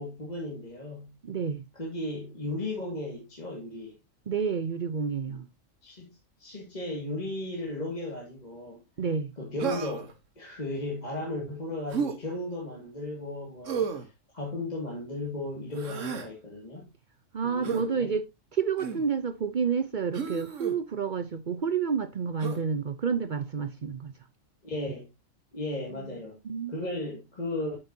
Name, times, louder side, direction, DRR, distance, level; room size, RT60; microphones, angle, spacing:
voice 1, 0.0-1.1 1.8-4.0 5.3-5.4 5.8-8.8 9.4-14.1 14.3-16.9 17.4-18.1 24.6-25.1 25.5-26.4 26.7-27.8, left 1 dB, 30° left, 2.2 m, -35 dB
voice 2, 1.2-1.6 4.3-5.5 9.0-9.3 17.3-18.3 18.5-24.1 25.9-26.1 26.4-26.8, right 6 dB, 50° right, 0.7 m, -29 dB
Human voice, 9.6-10.1 11.9-12.2 13.7-14.1 15.7-16.3 17.6-17.9 18.8-19.1 20.1-20.8 22.4-22.6, right 6 dB, 70° right, 1.6 m, -32 dB
9.0 x 7.9 x 2.7 m
omnidirectional pair, 1.4 m